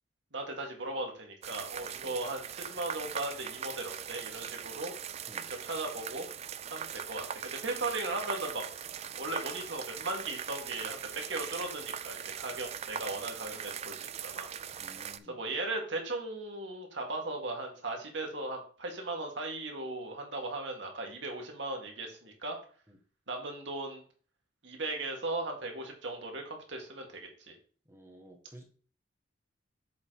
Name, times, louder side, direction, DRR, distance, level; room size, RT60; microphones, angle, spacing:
voice 1, 0.3-4.9 5.5-6.3 6.7-8.6 9.2-14.5 15.3-22.6 23.3-24.0 24.6-27.6, right 2 dB, 70° right, 2 dB, 1.8 m, -37 dB
sound 1, 1.4-15.2, right 8 dB, 35° right, 0.3 m, -41 dB
voice 2, 14.7-15.4 22.9-23.0 27.8-28.6, equal, 15° right, 1 dB, 1.4 m, -53 dB
7.3 x 3.8 x 4.8 m, 0.42 s
head